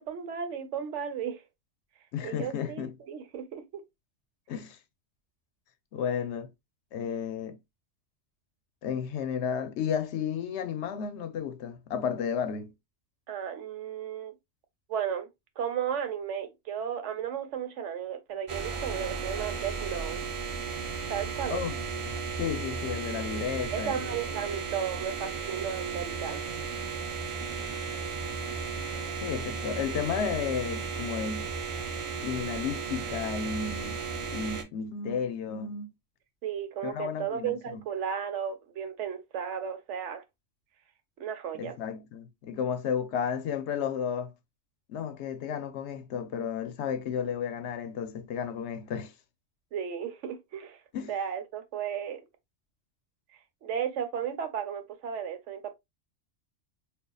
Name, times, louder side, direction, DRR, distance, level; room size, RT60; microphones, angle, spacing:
voice 1, 0.0-1.4 2.2-3.8 13.3-14.3 14.9-15.3 15.6-20.2 21.1-21.6 23.7-26.9 36.4-40.2 41.2-41.8 49.7-50.8 51.1-52.2 53.6-55.7, right 8 dB, 80° right, 1.0 m, -34 dB
voice 2, 2.1-2.9 4.5-4.8 5.9-6.5 6.9-7.6 8.8-12.7 21.5-24.2 29.2-31.5 32.2-34.0 34.3-35.9 36.8-37.8 41.5-44.3 44.9-49.1 50.9-51.1, left 7 dB, 75° left, 0.8 m, -33 dB
Buzzing Light, 18.5-34.6, right 5 dB, 40° right, 0.5 m, -35 dB
5.0 x 2.4 x 2.2 m
omnidirectional pair, 1.2 m